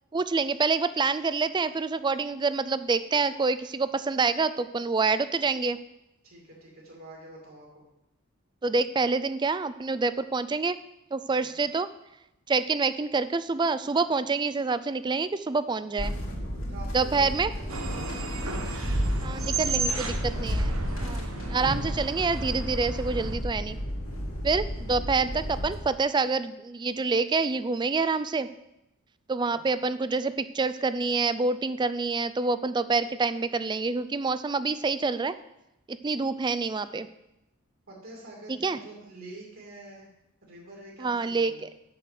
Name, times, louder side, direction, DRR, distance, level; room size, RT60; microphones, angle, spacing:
voice 1, 0.1-5.8 8.6-10.8 11.1-11.9 12.5-16.1 16.9-17.5 19.2-20.7 21.0-21.2 21.5-23.8 24.4-28.5 29.3-35.3 35.9-37.1 38.6-38.8 41.0-41.7, right 4 dB, 20° right, 13 dB, 0.4 m, -27 dB
voice 2, 6.2-7.9 11.3-11.6 16.5-18.7 19.3-20.6 24.1-24.4 29.5-29.8 37.9-40.1 40.4-41.7, right 2 dB, 65° right, -3 dB, 2.6 m, -47 dB
sound 1, 16.0-25.8, equal, 65° left, 2.5 m, -34 dB
sound 2, 17.7-23.4, right 2 dB, 90° right, 1.3 m, -31 dB
7.8 x 6.4 x 7.6 m, 0.88 s
head